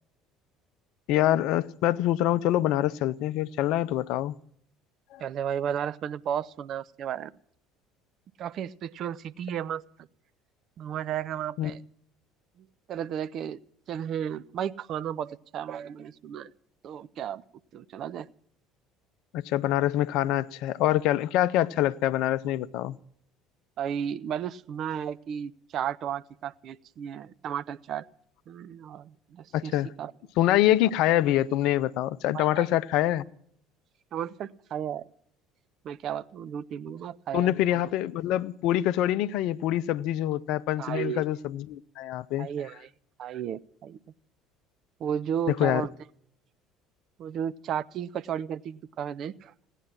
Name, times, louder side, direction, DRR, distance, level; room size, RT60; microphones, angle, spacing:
voice 1, 1.1-4.3 5.1-5.2 11.6-11.7 19.3-23.0 29.5-29.9 30.4-33.3 37.3-42.5 45.5-45.9, left 13 dB, 60° left, 0.5 m, -25 dB
voice 2, 5.2-7.3 8.4-9.8 10.8-11.8 12.9-13.6 13.9-16.5 16.8-17.4 17.7-18.3 23.8-28.1 28.5-30.1 32.3-32.6 34.1-35.0 35.8-37.8 40.8-41.2 42.4-42.9 43.2-44.0 45.0-45.9 47.2-49.5, right 9 dB, 50° right, 0.6 m, -33 dB
17.0 x 10.0 x 7.4 m
figure-of-eight pair, 60°, 0 cm